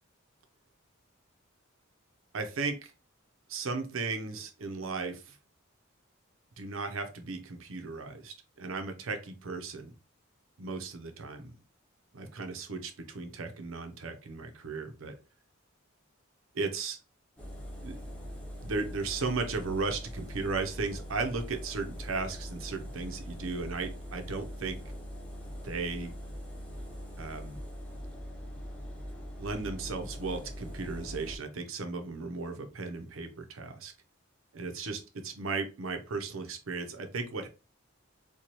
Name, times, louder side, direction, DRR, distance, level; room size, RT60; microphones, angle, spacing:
voice 1, 2.3-2.9 3.5-5.4 6.6-9.9 10.6-11.6 12.1-15.1 16.5-17.0 17.8-18.0 18.6-24.8 25.6-26.1 27.2-27.6 29.4-33.9 34.5-37.5, right 4 dB, 70° right, 6 dB, 0.7 m, -36 dB
Engine, 17.4-31.4, equal, 5° left, 0.9 m, -42 dB
4.5 x 2.3 x 2.9 m, 0.30 s
head